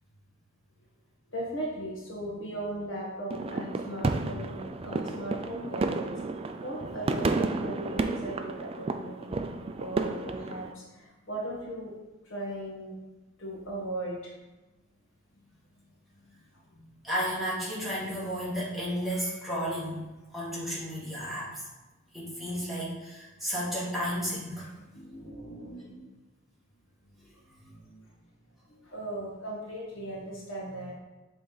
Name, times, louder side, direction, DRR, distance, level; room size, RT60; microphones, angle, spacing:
voice 1, 1.3-6.1 6.6-9.5 9.8-11.9 12.2-13.0 13.4-14.3 16.7-16.9 24.8-26.1 27.6-28.0 28.7-31.0, right 1 dB, 65° left, -3 dB, 1.4 m, -38 dB
sound 1, 3.3-10.7, right 3 dB, 30° right, 0.3 m, -32 dB
voice 2, 17.0-21.7 22.1-24.8, equal, ahead, -9 dB, 1.9 m, -33 dB
7.6 x 3.5 x 3.9 m, 1.2 s
head